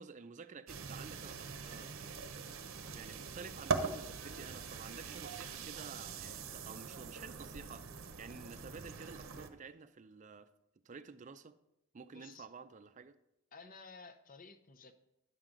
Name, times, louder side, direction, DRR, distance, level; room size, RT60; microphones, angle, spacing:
voice 1, 0.0-2.1 2.9-10.5 10.8-11.6 11.9-13.2, right 5 dB, 35° right, 0.4 m, -51 dB
sound 1, 0.7-9.5, right 4 dB, 65° right, 0.7 m, -42 dB
voice 2, 12.1-12.5 13.5-14.9, left 4 dB, 40° left, 0.6 m, -54 dB
9.9 x 7.4 x 3.8 m
head